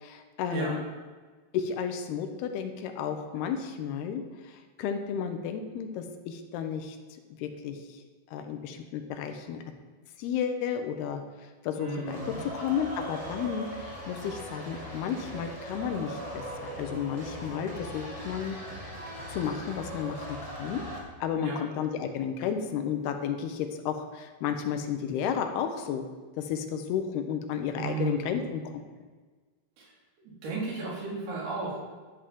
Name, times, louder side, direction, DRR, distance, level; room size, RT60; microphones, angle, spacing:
voice 1, 0.0-0.8 1.5-4.2 4.8-7.0 7.4-7.8 8.3-9.6 10.2-11.2 11.6-18.6 19.3-20.8 21.2-26.1 26.4-28.6, left 8 dB, 80° left, 7 dB, 2.9 m, -32 dB
voice 2, 11.8-12.4 21.4-21.6 27.7-28.5 29.8-29.9 30.4-31.8, right 4 dB, 75° right, -4 dB, 5.1 m, -34 dB
sound 1, 12.0-21.0, equal, 25° right, 0.8 m, -40 dB
12.5 x 5.1 x 7.5 m, 1.4 s
omnidirectional pair, 4.6 m